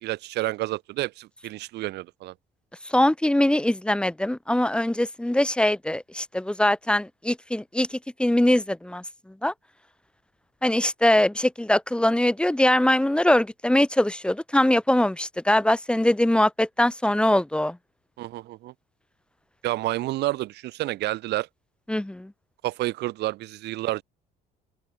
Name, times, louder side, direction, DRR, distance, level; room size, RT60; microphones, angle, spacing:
voice 1, 0.0-2.3 18.2-18.7 19.6-21.5 22.6-24.0, right 17 dB, 80° right, 3.1 m, -29 dB
voice 2, 2.9-9.0 9.4-9.5 10.6-17.8 21.9-22.3, left 1 dB, 5° left, 2.5 m, -22 dB
open air
cardioid pair, 110°, 17 cm